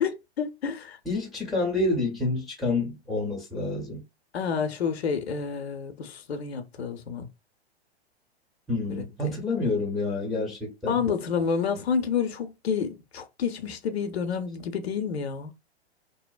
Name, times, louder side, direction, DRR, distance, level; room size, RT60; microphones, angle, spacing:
voice 1, 0.0-1.0 4.3-7.3 8.9-9.3 10.9-15.5, left 6 dB, 70° left, 0.5 m, -29 dB
voice 2, 1.1-4.0 8.7-11.0, left 2 dB, ahead, 0.4 m, -28 dB
2.7 x 2.0 x 2.2 m
figure-of-eight pair, 105°, 33 cm